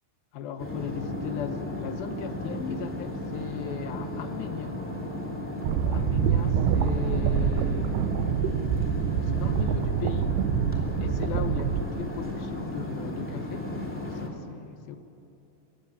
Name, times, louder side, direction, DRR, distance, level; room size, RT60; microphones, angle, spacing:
voice 1, 0.3-4.8 5.9-8.3 9.2-10.4 11.0-15.0, left 7 dB, 70° left, 8 dB, 2.6 m, -37 dB
sound 1, 0.6-14.3, left 1 dB, 5° left, 1.4 m, -35 dB
sound 2, 5.6-11.8, right 8 dB, 75° right, 2.7 m, -26 dB
24.5 x 15.0 x 9.9 m, 2.7 s
omnidirectional pair, 5.0 m